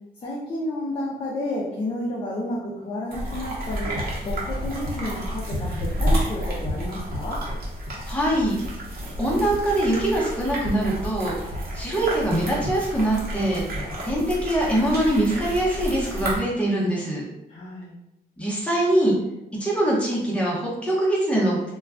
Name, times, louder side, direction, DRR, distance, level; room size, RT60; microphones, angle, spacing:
voice 1, 0.2-7.4 17.5-18.0, left 1 dB, 30° left, -5 dB, 0.5 m, -31 dB
sound 1, 3.1-16.4, equal, 65° right, 0.8 m, -30 dB
voice 2, 8.1-8.6 9.2-13.6 14.0-17.3 18.4-19.2 19.6-21.6, right 1 dB, 5° left, -5 dB, 0.8 m, -23 dB
2.3 x 2.2 x 3.6 m, 0.89 s
wide cardioid pair, 145°, 17 cm